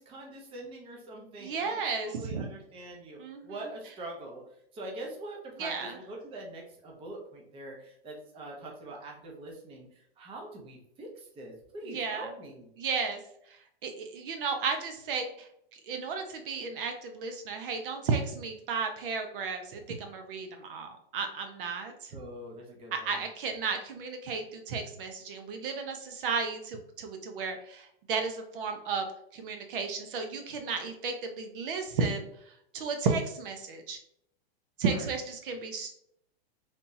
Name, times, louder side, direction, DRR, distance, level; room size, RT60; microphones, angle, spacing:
voice 1, 0.0-3.2 3.4-4.4 4.7-12.7 22.1-23.1 34.9-35.1, right 1 dB, 20° right, 0 dB, 0.7 m, -43 dB
voice 2, 1.4-2.5 3.2-3.7 5.6-6.0 11.8-12.3 12.8-13.2 13.8-15.5 15.9-22.2 22.9-29.1 29.3-32.3 32.7-34.0 34.8-35.9, right 5 dB, 60° right, 5 dB, 0.7 m, -33 dB
3.4 x 2.8 x 2.6 m, 0.72 s
hypercardioid pair, 140°, 31 cm